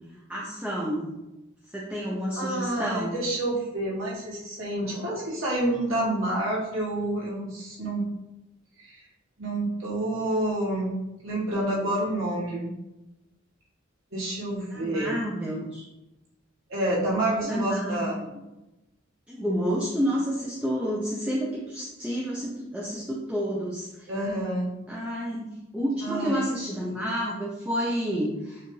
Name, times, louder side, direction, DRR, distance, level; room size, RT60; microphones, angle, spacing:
voice 1, 0.3-1.1 1.7-3.2 14.7-15.8 17.4-18.1 19.3-24.1 24.9-25.5 25.7-28.6, equal, 5° right, -5 dB, 0.6 m, -29 dB
voice 2, 2.3-8.1 8.8-9.0 9.4-12.7 14.1-15.2 16.7-18.2 24.1-24.7 26.0-26.7, right 1 dB, 85° right, -5 dB, 1.6 m, -28 dB
6.7 x 2.5 x 3.2 m, 0.98 s
head